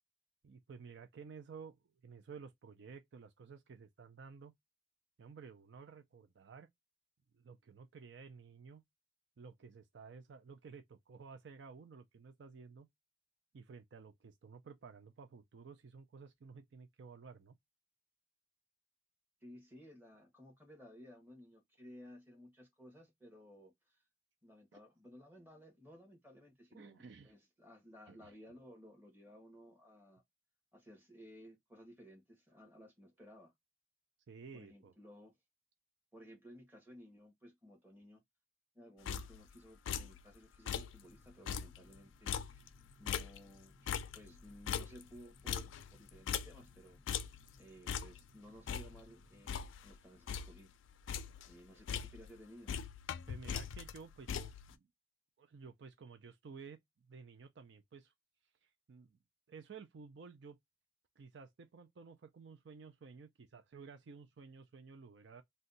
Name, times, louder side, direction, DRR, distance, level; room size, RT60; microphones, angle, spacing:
voice 1, 0.4-4.5 5.2-6.7 7.3-8.8 9.4-12.9 13.5-17.6 24.7-24.8 26.7-27.3 28.1-28.3 34.3-34.9 44.7-44.8 53.3-54.9 55.4-58.1 58.6-59.2 59.5-60.6 61.2-65.4, right 5 dB, 65° right, 0.4 m, -54 dB
voice 2, 19.4-24.0 24.4-30.2 30.7-33.5 34.5-35.4 36.1-38.2 38.7-42.7 43.0-47.0 47.6-50.7 51.5-52.7, equal, 10° right, 1.1 m, -57 dB
sound 1, 39.1-39.6 39.9-40.2 40.5-41.0 41.3-43.6 43.9-46.8 47.1-47.5 47.9-48.3 48.7-50.0 50.3-50.7 50.9-51.5 51.9-52.4 52.7-54.7, left 7 dB, 85° left, 0.3 m, -41 dB
sound 2, 41.0-49.5, left 1 dB, 45° right, 1.5 m, -67 dB
2.7 x 2.2 x 3.8 m
head